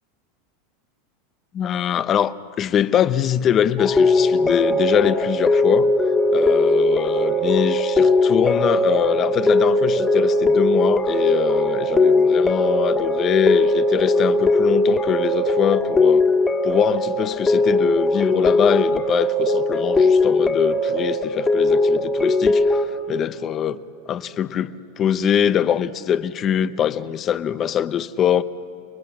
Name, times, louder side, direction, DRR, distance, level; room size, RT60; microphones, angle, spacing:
voice 1, 1.5-5.9 6.3-16.3 16.6-22.8 23.1-23.8 24.1-28.4, left 9 dB, 30° left, 0.8 m, -23 dB
sound 1, 3.8-22.9, left 2 dB, 15° left, 1.9 m, -19 dB
30.0 x 20.5 x 7.5 m
supercardioid pair, 130°, 0 cm